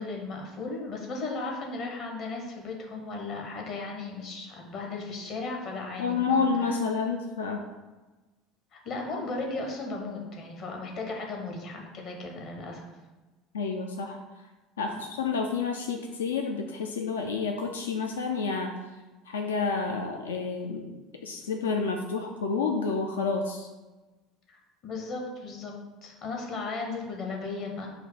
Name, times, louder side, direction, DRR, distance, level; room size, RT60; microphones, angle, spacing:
voice 1, 0.0-6.5 8.7-12.8 14.9-15.0 24.5-25.7 26.0-27.9, left 3 dB, 50° left, 1 dB, 1.1 m, -36 dB
voice 2, 6.0-7.6 13.5-14.2 14.8-18.7 19.3-21.0 21.2-23.7, left 4 dB, 80° left, 3 dB, 0.3 m, -29 dB
4.7 x 2.2 x 4.8 m, 1.2 s
figure-of-eight pair, 65°, 0 cm